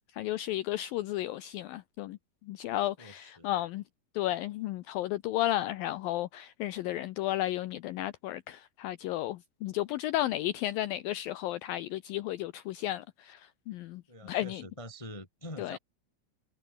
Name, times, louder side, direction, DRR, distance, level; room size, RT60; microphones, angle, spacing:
voice 1, 0.0-2.2 2.5-3.8 4.1-14.6 15.6-15.8, left 14 dB, 75° left, 2.3 m, -33 dB
voice 2, 3.0-3.5 14.1-15.8, equal, 10° left, 2.2 m, -45 dB
omnidirectional pair, 4.6 m